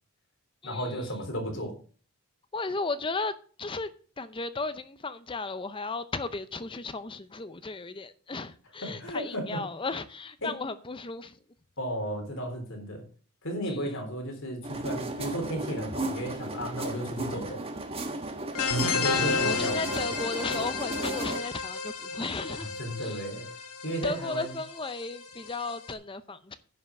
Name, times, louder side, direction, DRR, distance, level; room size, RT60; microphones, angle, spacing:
voice 1, 0.6-1.7 8.8-9.6 10.4-10.6 11.8-13.0 13.4-17.6 19.0-20.1 22.5-23.5 23.8-24.6, equal, 60° left, 3.6 m, -34 dB
voice 2, 2.5-3.3 3.6-3.9 4.2-11.3 13.7-13.8 19.1-22.7 23.0-23.2 24.0-26.6, left 3 dB, 20° left, 0.6 m, -35 dB
sound 1, 14.6-21.4, right 2 dB, 25° right, 1.3 m, -35 dB
sound 2, 18.5-25.9, left 4 dB, 85° left, 1.9 m, -32 dB
10.0 x 5.8 x 7.3 m
head